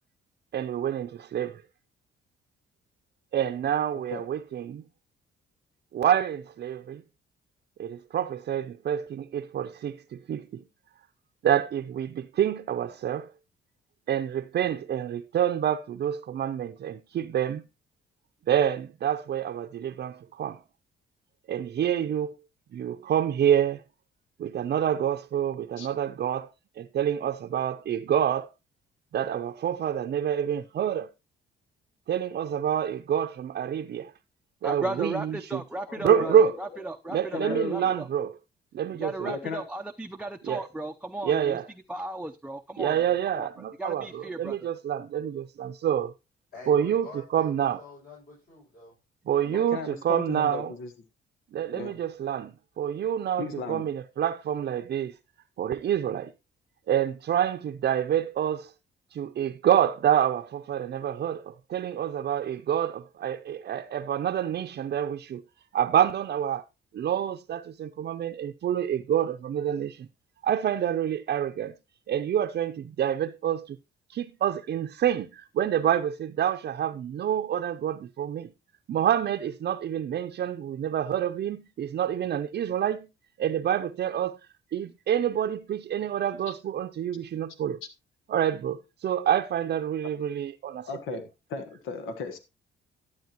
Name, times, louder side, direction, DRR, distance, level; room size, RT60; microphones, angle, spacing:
voice 1, 0.5-1.6 3.3-4.8 5.9-7.0 7.8-10.6 11.4-13.3 14.1-17.6 18.5-20.6 21.5-22.3 22.7-23.8 24.4-26.5 26.8-28.5 29.1-31.1 32.1-34.1 34.6-35.6 36.0-36.5 37.1-38.3 38.7-39.4 40.4-40.7 41.2-41.6 42.8-46.1 46.7-47.8 49.3-50.7 51.5-55.1 55.6-56.3 56.9-58.7 59.1-65.4 65.7-66.6 66.9-70.1 70.4-71.8 72.1-73.8 74.1-78.5 78.9-83.1 83.4-84.4 84.7-87.8 88.3-91.2, right 9 dB, 55° right, 0.6 m, -27 dB
voice 2, 34.6-38.1 38.9-41.6 41.9-43.5 43.8-44.6, right 1 dB, 5° right, 0.6 m, -36 dB
voice 3, 35.9-36.9 37.3-37.9 39.2-39.6 49.4-50.9 51.7-52.0 53.4-53.9 86.5-86.6 90.9-91.2 91.5-92.4, left 4 dB, 90° left, 1.4 m, -36 dB
voice 4, 46.5-48.9, left 3 dB, 50° left, 6.6 m, -46 dB
12.0 x 8.8 x 3.0 m
cardioid pair, 90°, 20 cm